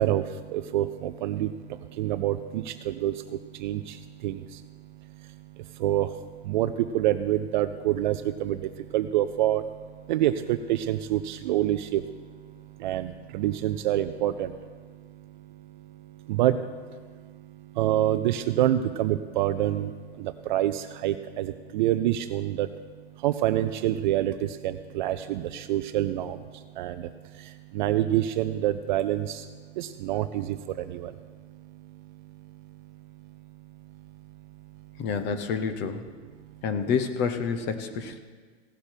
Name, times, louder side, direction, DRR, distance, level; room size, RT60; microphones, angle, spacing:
voice 1, 0.0-22.7 23.2-33.4 33.8-34.0, right 13 dB, 40° right, 11 dB, 0.4 m, -28 dB
voice 2, 35.0-36.1 36.6-38.2, left 6 dB, 30° left, 9 dB, 0.8 m, -28 dB
16.5 x 6.7 x 4.4 m, 1.5 s
hypercardioid pair, 135°, 37 cm